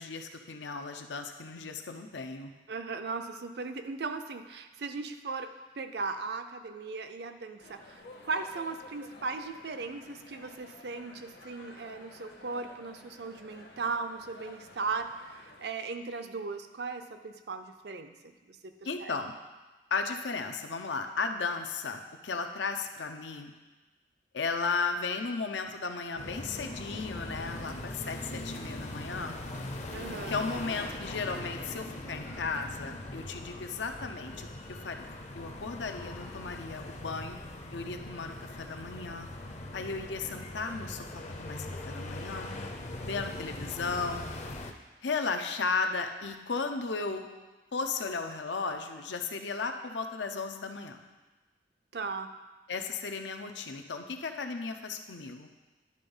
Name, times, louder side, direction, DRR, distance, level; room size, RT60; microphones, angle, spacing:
voice 1, 0.0-2.5 18.8-19.3 19.9-23.6 24.3-29.4 30.3-37.4 37.7-39.3 39.7-41.1 41.4-42.5 43.0-44.2 45.0-47.3 47.7-51.0 52.7-55.5, left 4 dB, 85° left, 6 dB, 0.7 m, -35 dB
voice 2, 2.7-5.5 5.8-15.1 15.6-18.3 18.6-18.7 19.0-19.1 29.9-30.3 51.9-52.3, right 4 dB, 60° right, 8 dB, 0.5 m, -37 dB
sound 1, 7.6-15.6, left 2 dB, 65° left, 1.1 m, -52 dB
sound 2, 26.2-44.7, left 1 dB, 40° left, 0.6 m, -41 dB
10.5 x 3.9 x 5.4 m, 1.2 s
head